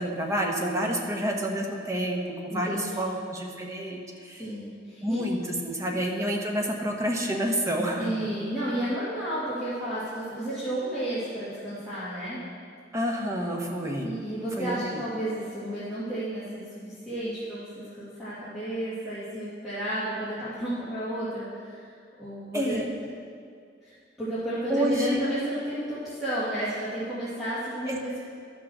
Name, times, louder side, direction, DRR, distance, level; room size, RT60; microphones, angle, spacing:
voice 1, 0.0-4.5 5.0-8.3 12.9-14.1 14.6-15.0 22.5-22.9 24.7-25.2 27.9-28.2, equal, 15° right, 0 dB, 1.2 m, -29 dB
voice 2, 2.5-3.1 4.4-5.2 8.0-12.4 14.0-22.7 23.8-23.9 24.2-28.2, right 1 dB, ahead, -14 dB, 2.4 m, -32 dB
12.5 x 6.2 x 6.2 m, 2.2 s
head